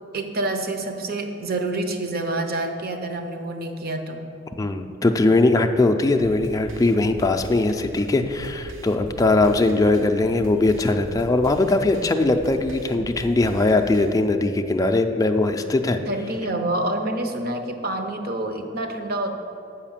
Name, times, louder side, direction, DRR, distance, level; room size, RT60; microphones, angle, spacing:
voice 1, 0.1-4.2 16.1-19.3, right 2 dB, 50° right, 6 dB, 0.8 m, -27 dB
voice 2, 4.6-16.0, left 2 dB, 15° left, 5 dB, 0.4 m, -20 dB
sound 1, 6.2-14.2, equal, 80° right, 0.9 m, -41 dB
7.7 x 5.0 x 7.3 m, 2.7 s
head